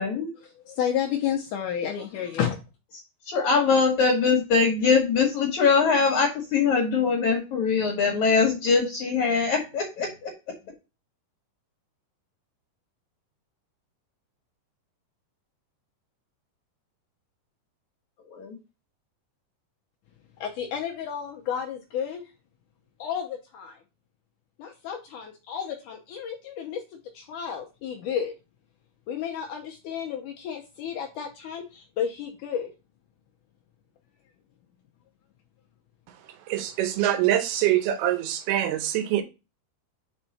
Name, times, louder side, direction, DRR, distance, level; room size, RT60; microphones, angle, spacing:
voice 1, 0.4-2.6 20.4-22.2 23.0-23.8 24.6-28.3 29.1-32.7, left 8 dB, 80° left, 1.8 m, -31 dB
voice 2, 3.3-10.3 18.3-18.6, left 5 dB, 60° left, 2.2 m, -22 dB
voice 3, 36.5-39.2, right 12 dB, 80° right, 2.8 m, -24 dB
5.4 x 5.4 x 4.0 m
omnidirectional pair, 4.6 m